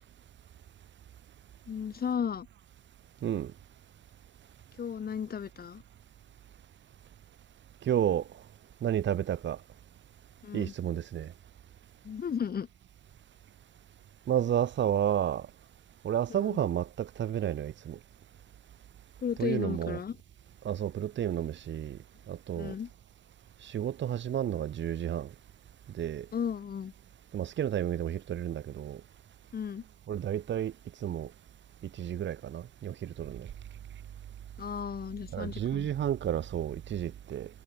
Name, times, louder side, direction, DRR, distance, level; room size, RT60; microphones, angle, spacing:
voice 1, 1.7-2.5 4.8-5.8 10.4-10.7 12.0-12.7 16.3-16.6 19.2-20.2 22.6-22.9 26.3-26.9 29.5-29.8 34.6-35.9, left 7 dB, 50° left, 4.4 m, -34 dB
voice 2, 7.9-8.2 8.8-9.6 10.5-11.3 14.3-15.4 16.0-18.0 19.4-20.0 20.6-22.0 22.3-22.7 23.7-25.3 26.0-26.3 27.3-29.0 30.1-30.7 31.0-31.3 32.0-33.5 35.3-37.5, right 10 dB, 65° right, 7.8 m, -31 dB
cardioid pair, 90°, 20 cm